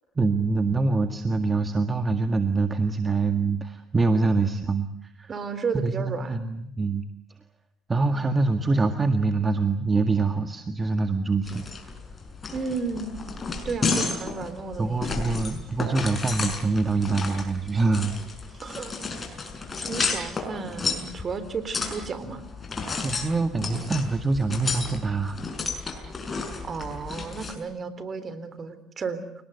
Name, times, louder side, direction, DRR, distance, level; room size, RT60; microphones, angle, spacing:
voice 1, 0.2-5.3 5.7-7.0 7.9-11.7 14.8-18.1 23.0-25.4, right 3 dB, 25° right, 7 dB, 1.9 m, -25 dB
voice 2, 5.3-6.5 12.5-13.2 13.6-15.2 18.6-18.9 19.8-22.4 26.6-29.2, right 5 dB, 40° right, 13 dB, 3.7 m, -33 dB
sound 1, 11.4-27.5, left 4 dB, 30° left, 6.2 m, -32 dB
30.0 x 19.0 x 8.2 m, 0.76 s
supercardioid pair, 85°, 0 cm